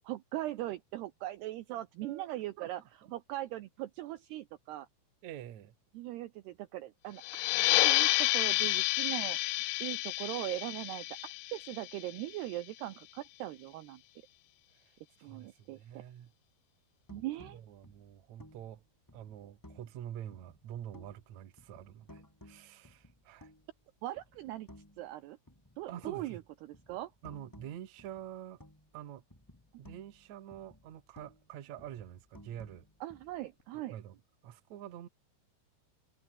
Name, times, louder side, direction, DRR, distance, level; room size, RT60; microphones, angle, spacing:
voice 1, 0.1-2.8 3.1-4.9 5.9-7.2 7.8-9.4 9.8-11.1 11.5-14.0 15.2-16.0 17.1-17.6 24.0-24.7 25.0-25.4 25.8-27.1 33.0-34.0, right 15 dB, 80° right, 2.4 m, -40 dB
voice 2, 2.6-3.1 5.2-5.7 14.7-16.3 17.1-18.8 19.1-23.5 25.9-26.4 27.2-28.6 28.9-29.2 29.8-32.9 33.9-35.1, right 11 dB, 60° right, 2.0 m, -47 dB
sound 1, 7.2-12.5, left 20 dB, 85° left, 2.5 m, -30 dB
sound 2, 17.1-20.0 20.3-21.3 21.6-23.8 24.2-25.2 25.5-29.0 29.3-31.5 31.8-33.6, left 1 dB, 5° left, 2.3 m, -57 dB
omnidirectional pair, 5.8 m